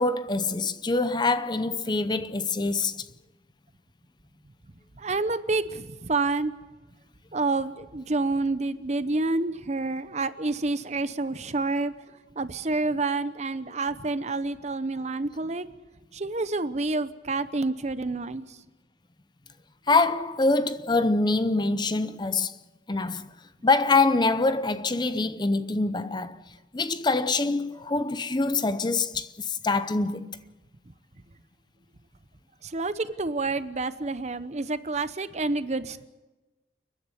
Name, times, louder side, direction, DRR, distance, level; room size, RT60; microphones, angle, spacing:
voice 1, 0.0-3.1 19.9-22.6 22.9-23.3 23.6-26.4 26.7-30.4, left 3 dB, 25° left, 0.6 m, -25 dB
voice 2, 5.0-6.5 7.3-11.9 12.4-15.7 16.1-18.6 32.6-36.0, right 3 dB, 40° right, 0.8 m, -28 dB
30.0 x 10.5 x 9.8 m
head